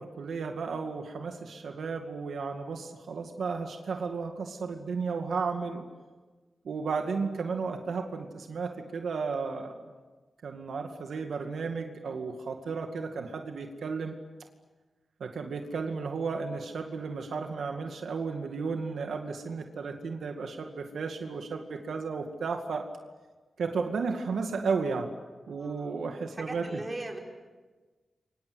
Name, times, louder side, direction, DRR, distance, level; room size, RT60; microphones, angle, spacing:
voice 1, 0.0-5.9 6.6-9.9 10.4-14.1 15.2-22.9 23.6-25.1 25.5-26.8, right 4 dB, 90° right, 4 dB, 2.2 m, -33 dB
voice 2, 25.5-25.9 26.4-27.2, right 2 dB, 25° right, 1 dB, 5.4 m, -39 dB
29.0 x 24.5 x 8.1 m, 1.3 s
wide cardioid pair, 110°, 0 cm